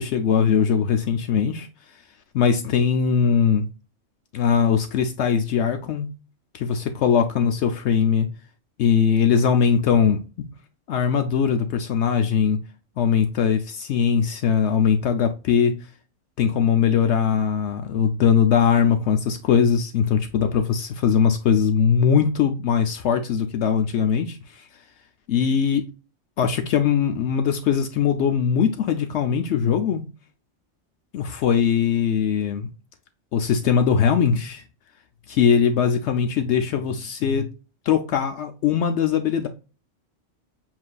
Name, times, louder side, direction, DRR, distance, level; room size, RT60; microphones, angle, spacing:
voice 1, 0.0-1.7 2.3-3.7 4.3-6.1 6.5-8.3 8.8-10.5 10.9-12.6 13.0-15.8 16.4-24.6 25.3-25.8 26.4-30.0 31.1-32.7 33.3-34.6 35.3-37.5 37.9-39.5, left 7 dB, 70° left, 0.8 m, -21 dB
7.3 x 2.7 x 2.3 m
omnidirectional pair, 1.3 m